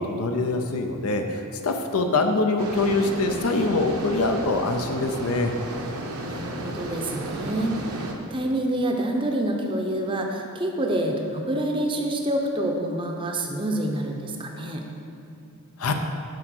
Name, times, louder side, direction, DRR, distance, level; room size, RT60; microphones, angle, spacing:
voice 1, 0.0-5.5 15.8-15.9, left 3 dB, 80° left, 5 dB, 0.6 m, -24 dB
sound 1, 2.6-8.1, right 1 dB, 80° right, 0.9 m, -34 dB
voice 2, 6.2-7.9 8.3-14.9, right 1 dB, 20° right, 2 dB, 0.6 m, -27 dB
7.7 x 5.0 x 6.1 m, 2.6 s
head